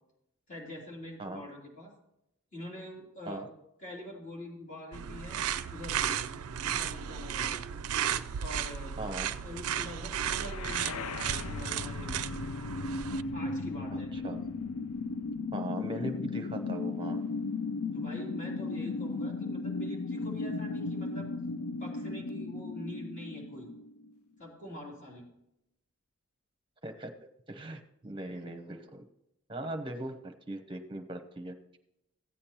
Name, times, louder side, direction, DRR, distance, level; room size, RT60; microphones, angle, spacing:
voice 1, 0.5-1.9 2.5-3.5 3.8-6.2 6.6-7.6 8.4-8.9 9.4-12.4 13.3-14.1 17.9-21.3 21.6-23.7 24.4-25.3, left 1 dB, 35° left, -3 dB, 3.2 m, -45 dB
sound 1, 4.9-13.2, right 9 dB, 85° right, 0.4 m, -34 dB
voice 2, 9.0-9.3 13.9-14.4 15.5-17.2 26.8-27.1 27.5-29.0 29.5-31.5, right 1 dB, 25° right, 6 dB, 0.9 m, -39 dB
sound 2, 10.2-24.2, left 3 dB, 85° left, 0.5 m, -36 dB
15.5 x 8.5 x 3.0 m, 0.83 s
head